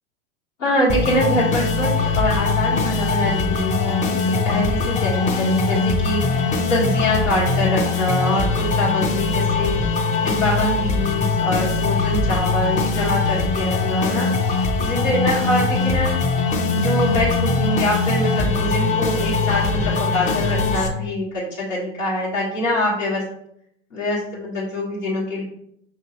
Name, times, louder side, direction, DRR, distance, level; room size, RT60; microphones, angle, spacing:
voice 1, 0.6-16.1 16.7-23.2 23.9-25.4, left 1 dB, 90° left, -8 dB, 1.4 m, -24 dB
sound 1, 0.9-20.9, left 4 dB, 20° left, 0.5 m, -21 dB
5.4 x 2.8 x 2.8 m, 0.72 s
hypercardioid pair, 100°, 37 cm